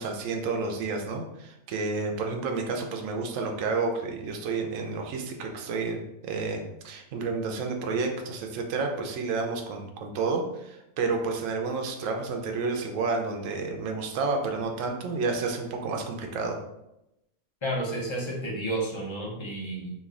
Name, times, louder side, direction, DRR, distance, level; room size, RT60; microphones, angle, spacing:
voice 1, 0.0-16.6, right 4 dB, 75° right, 2 dB, 0.9 m, -30 dB
voice 2, 17.6-19.9, right 1 dB, 25° left, -3 dB, 0.7 m, -31 dB
3.1 x 2.6 x 3.6 m, 0.86 s
omnidirectional pair, 1.4 m